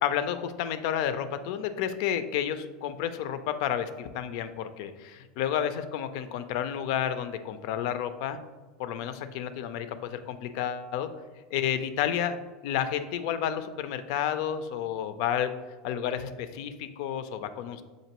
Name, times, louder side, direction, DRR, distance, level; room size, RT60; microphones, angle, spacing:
voice 1, 0.0-8.4 8.8-11.1 11.5-12.4 12.6-15.5 15.8-17.8, left 9 dB, 70° left, 10 dB, 0.4 m, -31 dB
6.8 x 2.6 x 2.9 m, 1.4 s
supercardioid pair, 105°, 3 cm